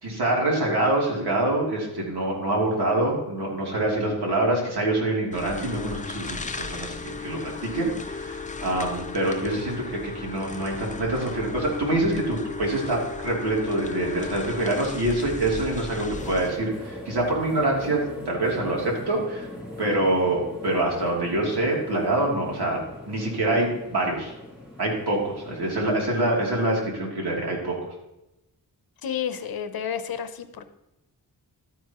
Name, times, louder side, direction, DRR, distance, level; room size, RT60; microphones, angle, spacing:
voice 1, 0.0-18.0 18.2-19.5 19.8-22.8 23.0-24.3 24.8-27.7, right 2 dB, 90° right, -2 dB, 3.0 m, -25 dB
sound 1, 5.3-16.5, left 4 dB, 20° left, 0.5 m, -35 dB
sound 2, 16.1-26.9, left 1 dB, 5° right, 2.3 m, -41 dB
voice 2, 29.0-30.7, left 8 dB, 65° left, 10 dB, 0.8 m, -31 dB
12.5 x 9.5 x 3.0 m, 0.94 s
wide cardioid pair, 165°, 38 cm